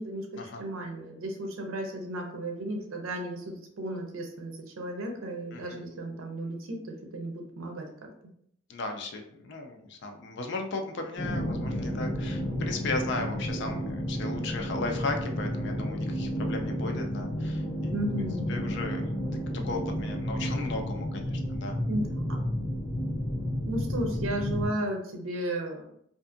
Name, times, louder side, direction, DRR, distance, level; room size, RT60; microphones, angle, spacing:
voice 1, 0.0-8.1 17.9-18.5 21.9-22.4 23.7-25.9, right 1 dB, 80° right, 2 dB, 0.6 m, -34 dB
voice 2, 8.7-18.0 18.5-19.0 19.6-21.8, left 3 dB, 55° left, 3 dB, 0.4 m, -36 dB
sound 1, 11.2-24.7, equal, 75° left, 1.0 m, -31 dB
2.5 x 2.5 x 2.4 m, 0.69 s
head